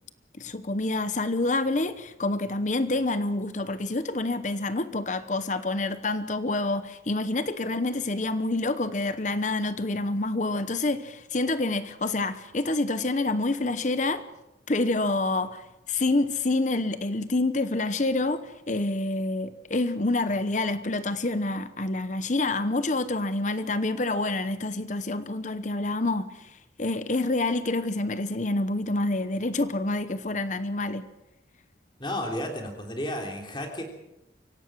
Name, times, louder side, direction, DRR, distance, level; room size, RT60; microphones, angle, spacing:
voice 1, 0.4-14.2 14.7-26.5 26.8-31.0, left 2 dB, 40° left, 0.9 m, -27 dB
voice 2, 32.0-33.8, left 1 dB, 25° left, 3.3 m, -32 dB
25.0 x 17.0 x 6.2 m
head